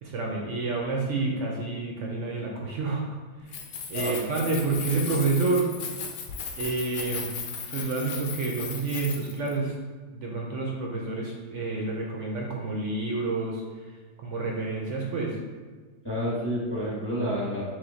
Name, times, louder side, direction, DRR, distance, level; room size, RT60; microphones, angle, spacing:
voice 1, 0.0-3.6 3.9-5.7 6.6-7.3 7.7-9.7 10.1-13.9 14.2-15.4, right 3 dB, 70° right, -1 dB, 0.7 m, -29 dB
Keys jangling, 3.4-9.5, left 6 dB, 80° left, 1.2 m, -36 dB
voice 2, 16.0-17.7, equal, 10° left, -8 dB, 1.0 m, -29 dB
3.5 x 3.3 x 3.9 m, 1.4 s
omnidirectional pair, 1.8 m